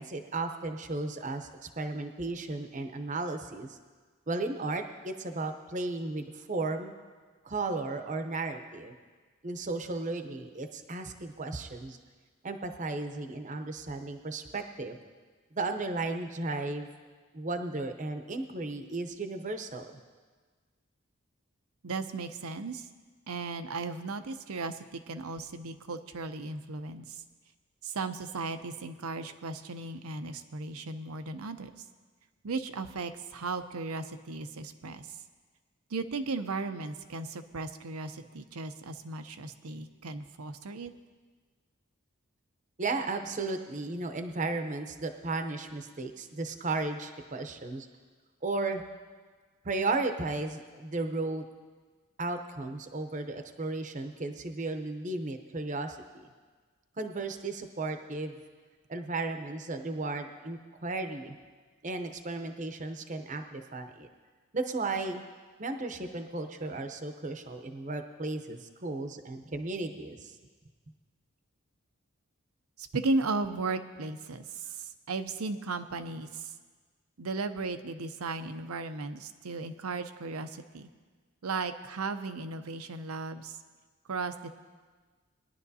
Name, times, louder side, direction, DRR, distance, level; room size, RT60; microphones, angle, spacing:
voice 1, 0.0-3.8 4.3-6.9 7.4-8.9 9.4-12.0 12.4-15.0 15.5-16.9 17.3-20.0 42.8-47.9 48.4-48.8 49.6-51.4 52.2-56.3 57.0-58.3 58.9-61.4 61.8-64.1 64.5-65.2 65.6-70.3, right 3 dB, 35° right, 6 dB, 0.7 m, -35 dB
voice 2, 21.8-22.9 23.3-27.2 27.8-31.7 32.4-35.1 35.9-40.9 72.8-76.5 77.2-80.9 81.4-83.6 84.1-84.5, right 3 dB, 90° right, 9 dB, 0.7 m, -36 dB
21.0 x 11.0 x 2.7 m, 1.4 s
head